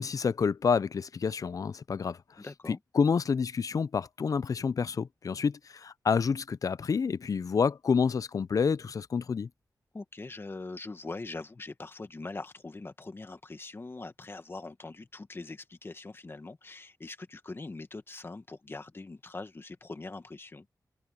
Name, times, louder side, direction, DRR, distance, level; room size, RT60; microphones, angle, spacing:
voice 1, 0.0-2.2 2.7-9.5, left 5 dB, 55° left, 0.5 m, -28 dB
voice 2, 2.4-2.8 9.9-20.7, left 3 dB, 35° left, 1.9 m, -42 dB
wide cardioid pair, 105°, 7 cm